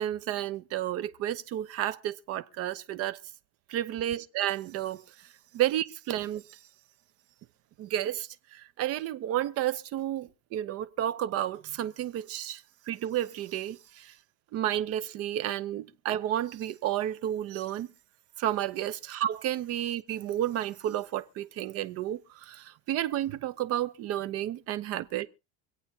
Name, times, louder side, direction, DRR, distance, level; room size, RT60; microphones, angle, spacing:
voice 1, 0.0-3.2 3.7-5.0 5.5-6.6 7.8-12.6 12.9-14.1 14.5-17.9 18.4-25.3, right 12 dB, 45° right, 0.7 m, -31 dB
25.5 x 8.5 x 2.8 m
cardioid pair, 150°, 35 cm